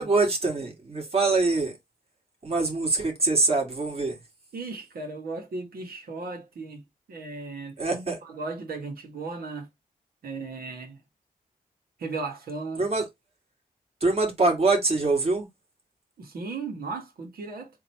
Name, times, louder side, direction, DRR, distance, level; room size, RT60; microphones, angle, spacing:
voice 1, 0.0-1.8 2.4-4.2 7.8-8.2 12.8-13.1 14.0-15.5, right 3 dB, 40° right, 2.2 m, -24 dB
voice 2, 4.5-6.8 7.1-9.7 10.2-11.0 12.0-12.8 16.2-17.7, right 3 dB, 85° right, 1.7 m, -36 dB
3.8 x 2.9 x 4.3 m
wide cardioid pair, 95°, 15 cm